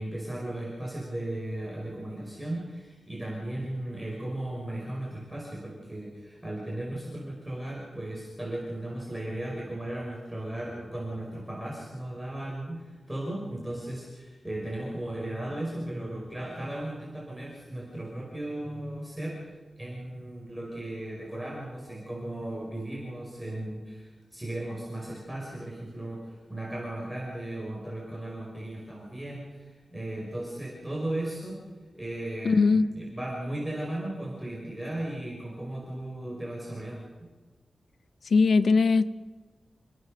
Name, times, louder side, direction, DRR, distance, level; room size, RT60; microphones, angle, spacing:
voice 1, 0.0-37.0, right 1 dB, 10° right, -3 dB, 5.9 m, -36 dB
voice 2, 32.4-32.9 38.2-39.1, left 4 dB, 70° left, 12 dB, 0.9 m, -20 dB
29.0 x 17.0 x 6.8 m, 1.3 s
wide cardioid pair, 135°, 0 cm